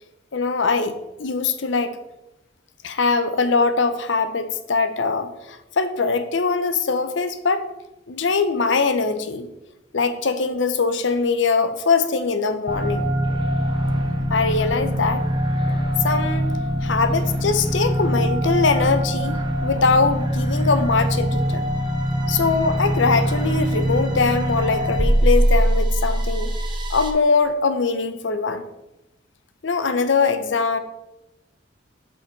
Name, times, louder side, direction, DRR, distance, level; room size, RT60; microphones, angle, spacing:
voice 1, 0.3-2.0 2.8-7.7 8.1-9.5 9.9-13.1 14.3-15.2 16.0-16.5 16.8-21.7 22.3-26.5 26.9-28.6 29.6-30.8, left 4 dB, 80° left, 10 dB, 0.7 m, -22 dB
sound 1, 12.7-27.1, equal, 25° right, 0.9 m, -22 dB
7.4 x 5.6 x 4.5 m, 0.95 s
head